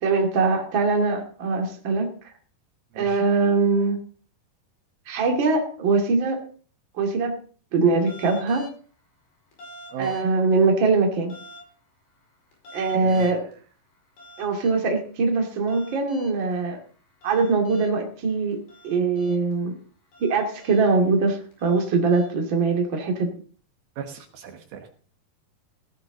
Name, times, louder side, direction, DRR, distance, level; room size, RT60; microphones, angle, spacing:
voice 1, 0.0-2.1 3.0-4.0 5.1-6.4 7.0-7.3 7.7-8.6 10.0-11.3 12.7-13.4 14.4-16.8 17.2-18.6 18.8-19.7 20.2-23.3, right 4 dB, 35° right, 2 dB, 2.6 m, -22 dB
sound 1, 8.1-8.8 9.5-10.5 11.3-11.7 12.5-13.5 14.2-14.8 15.5-16.5 17.2-17.9 18.5-19.5 20.1-20.9 21.5-22.5, left 1 dB, 65° left, 6.7 m, -45 dB
voice 2, 12.9-13.5 24.0-24.9, right 7 dB, 70° right, 5 dB, 3.1 m, -37 dB
18.5 x 12.5 x 3.9 m, 0.43 s
omnidirectional pair, 4.6 m